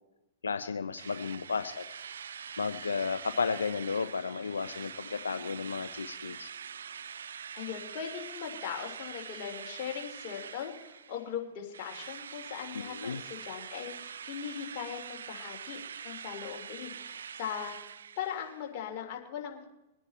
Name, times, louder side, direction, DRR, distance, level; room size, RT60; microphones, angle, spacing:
voice 1, 0.4-2.0 2.6-6.5 12.7-13.2, left 5 dB, 90° left, 10 dB, 0.6 m, -33 dB
Drill, 1.0-11.4 11.7-18.6, right 7 dB, 80° right, 0.5 m, -44 dB
voice 2, 7.5-15.8 16.0-17.7 18.2-19.7, left 8 dB, 45° left, 1 dB, 3.3 m, -39 dB
23.0 x 9.8 x 4.3 m, 0.99 s
hypercardioid pair, 115°, 0 cm